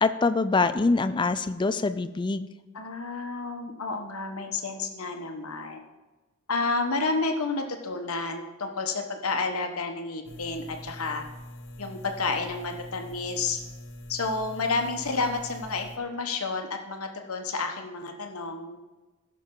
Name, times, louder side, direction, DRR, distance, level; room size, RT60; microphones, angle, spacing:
voice 1, 0.0-2.5, left 3 dB, 20° left, 11 dB, 0.4 m, -24 dB
voice 2, 2.7-5.8 6.5-11.2 11.8-13.6 14.1-18.8, left 3 dB, 85° left, 4 dB, 1.2 m, -30 dB
sound 1, 10.2-16.0, left 1 dB, 55° left, 1.1 m, -44 dB
16.0 x 6.5 x 3.8 m, 1.2 s
head